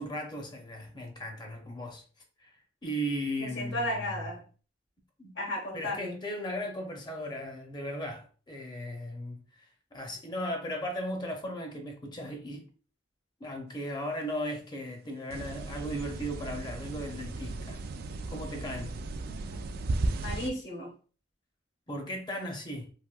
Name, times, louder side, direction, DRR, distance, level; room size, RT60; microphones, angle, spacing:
voice 1, 0.0-2.0 2.4-2.6 2.8-4.3 5.2-5.3 5.7-12.6 13.4-17.8 18.3-19.0 21.9-22.9, equal, 25° left, 0.6 m, -37 dB
voice 2, 3.4-4.4 5.4-6.2 19.3-19.7 20.2-20.9, left 1 dB, 65° left, 1.1 m, -35 dB
sound 1, 15.3-20.5, right 2 dB, 55° right, 0.3 m, -35 dB
3.4 x 2.5 x 2.3 m
head